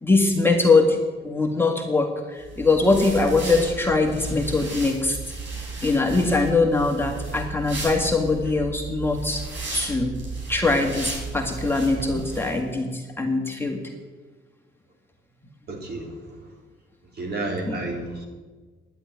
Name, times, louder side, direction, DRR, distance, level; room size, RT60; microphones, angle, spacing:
voice 1, 0.0-5.2 5.8-9.4 9.7-10.1 10.5-13.8 17.7-17.8, left 3 dB, 10° left, 1 dB, 1.9 m, -22 dB
sound 1, 2.4-12.6, right 3 dB, 70° right, 5.4 m, -34 dB
voice 2, 15.7-16.4 17.2-18.2, right 2 dB, 55° right, -1 dB, 3.9 m, -31 dB
10.5 x 7.8 x 9.4 m, 1.3 s
cardioid pair, 90°, 20 cm